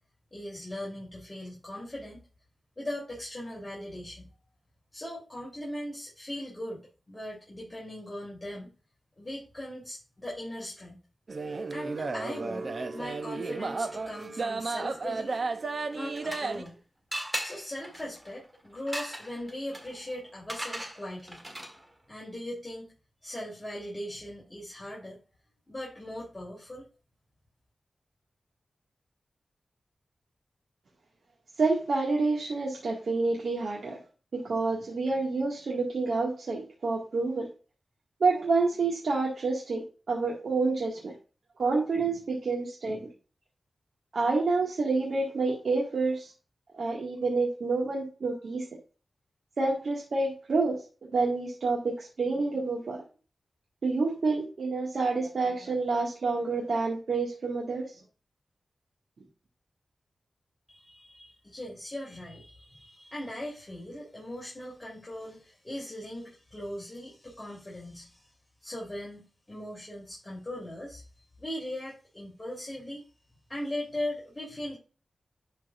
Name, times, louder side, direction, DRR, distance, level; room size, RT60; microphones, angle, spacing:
voice 1, 0.3-2.2 2.8-4.3 4.9-6.8 7.1-8.7 9.2-11.0 11.7-15.4 15.9-16.8 17.4-21.4 22.1-22.9 23.2-25.2 25.7-26.8 60.7-68.2 68.6-71.0 71.4-73.0 73.5-74.8, left 1 dB, 20° left, -4 dB, 3.6 m, -39 dB
Carnatic varnam by Ramakrishnamurthy in Saveri raaga, 11.3-16.6, right 3 dB, 55° right, 0.7 m, -33 dB
sound 1, 15.8-16.7 17.1-21.9, equal, 20° right, 1.7 m, -39 dB
voice 2, 31.6-34.0 34.3-37.5 38.2-41.1 41.6-43.1 44.1-46.3 46.8-48.6 49.6-53.0 53.8-57.9, right 3 dB, 80° right, -3 dB, 2.0 m, -28 dB
11.0 x 4.6 x 2.5 m, 0.34 s
wide cardioid pair, 80°, 0 cm